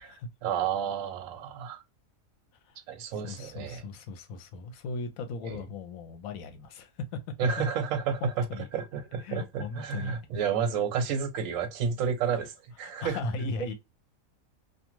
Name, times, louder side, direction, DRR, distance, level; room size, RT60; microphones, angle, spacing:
voice 1, 0.4-1.8 2.9-3.8 5.4-5.6 7.4-8.5 8.7-12.5 12.8-13.2, right 6 dB, 70° right, 1.0 m, -30 dB
voice 2, 3.1-7.2 8.2-8.7 9.2-10.2 12.3-12.4 12.8-13.7, left 4 dB, 75° left, 1.1 m, -38 dB
2.5 x 2.3 x 2.9 m
omnidirectional pair, 1.5 m